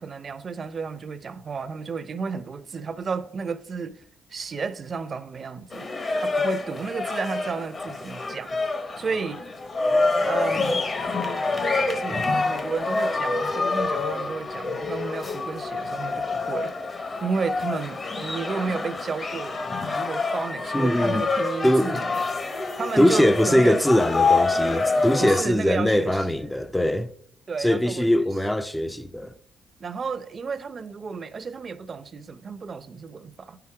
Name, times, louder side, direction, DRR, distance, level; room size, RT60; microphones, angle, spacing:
voice 1, 0.0-4.0 4.3-8.6 9.0-9.4 10.3-10.8 11.6-16.7 17.2-19.6 19.9-22.4 22.8-23.8 25.2-26.2 27.5-28.1 29.8-33.6, right 5 dB, 40° right, 0.6 m, -32 dB
sound 1, 5.7-25.4, left 3 dB, 35° left, 0.9 m, -27 dB
voice 2, 20.7-21.2 21.6-22.0 23.0-27.1 27.6-29.3, equal, 5° left, 0.5 m, -21 dB
9.2 x 5.8 x 4.9 m
cardioid pair, 90°, 0 cm